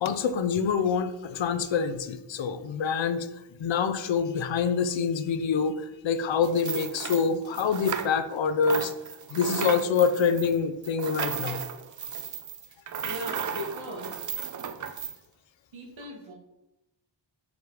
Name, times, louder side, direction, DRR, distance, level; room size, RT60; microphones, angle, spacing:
voice 1, 0.0-3.3 3.6-8.9 9.3-11.6, left 6 dB, 80° left, 11 dB, 0.7 m, -26 dB
sound 1, 6.4-8.4 8.6-15.2, right 7 dB, 45° right, 0.4 m, -35 dB
voice 2, 13.0-14.3 15.7-16.3, equal, 90° right, -2 dB, 1.7 m, -38 dB
5.3 x 4.9 x 4.8 m, 0.93 s
wide cardioid pair, 160°, 45 cm